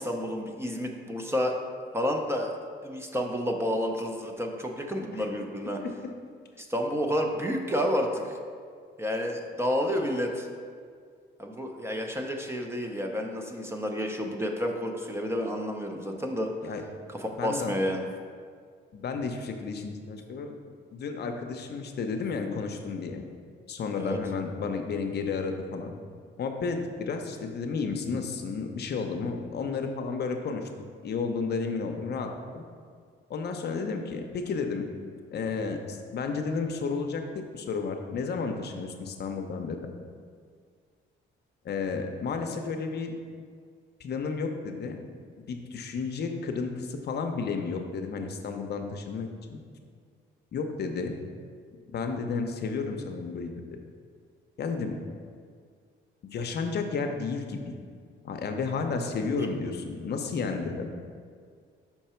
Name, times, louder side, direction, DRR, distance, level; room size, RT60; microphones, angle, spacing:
voice 1, 0.0-1.6 1.9-2.6 2.8-5.8 6.6-8.4 9.0-10.5 11.4-16.7 17.1-18.1 24.0-24.2, equal, 10° right, 2 dB, 0.7 m, -30 dB
voice 2, 17.4-17.8 18.9-20.6 20.9-23.2 23.7-25.9 26.4-30.7 31.0-32.6 33.3-34.9 35.3-39.9 41.6-43.1 44.0-45.0 45.5-49.6 50.5-51.2 51.9-53.5 54.6-55.0 56.3-57.7 58.2-60.9, left 4 dB, 55° left, 4 dB, 0.7 m, -32 dB
5.9 x 4.5 x 4.4 m, 2.1 s
cardioid pair, 90°, 20 cm